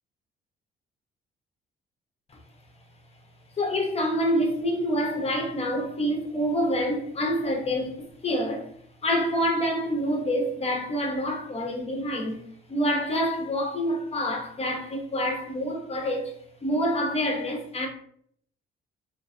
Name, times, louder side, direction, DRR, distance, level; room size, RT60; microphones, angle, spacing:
voice 1, 3.5-8.7 9.0-12.4 12.7-16.3 16.6-17.9, equal, 30° left, 0.7 m, -27 dB
2.5 x 2.2 x 2.6 m
cardioid pair, 90°, 20 cm